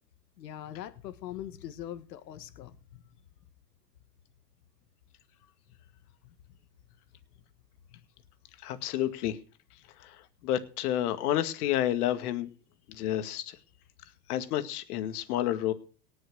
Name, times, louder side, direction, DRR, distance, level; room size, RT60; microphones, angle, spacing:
voice 1, 0.4-3.1 7.9-8.0, left 11 dB, 85° left, 1.7 m, -42 dB
voice 2, 8.6-9.4 10.0-10.2 10.4-12.5 12.9-13.6 14.3-15.7, left 12 dB, 65° left, 2.2 m, -30 dB
18.5 x 6.5 x 6.4 m
supercardioid pair, 130°, 49 cm